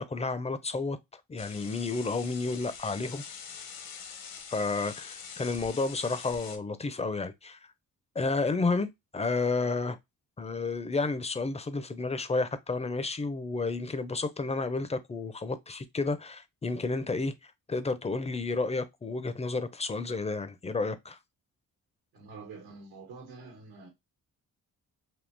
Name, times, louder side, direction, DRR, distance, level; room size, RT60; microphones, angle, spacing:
voice 1, 0.0-3.2 4.5-7.6 8.2-10.0 10.4-21.2, left 3 dB, 20° left, 0.4 m, -31 dB
sound 1, 1.4-6.6, left 6 dB, 80° left, 0.9 m, -44 dB
voice 2, 22.1-23.9, right 4 dB, 85° right, 1.1 m, -47 dB
3.6 x 2.7 x 2.5 m
cardioid pair, 95°, 36 cm